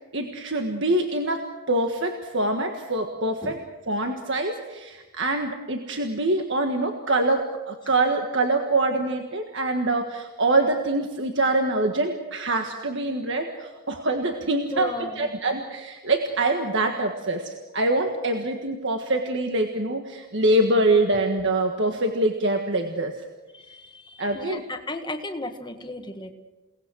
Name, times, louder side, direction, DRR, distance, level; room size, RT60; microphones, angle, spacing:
voice 1, 0.0-3.6 3.9-23.1 24.2-24.6, right 2 dB, 55° right, 4 dB, 1.7 m, -25 dB
voice 2, 14.7-15.3 23.5-26.3, left 2 dB, 20° left, 6 dB, 1.6 m, -35 dB
29.5 x 19.0 x 6.3 m, 1.2 s
head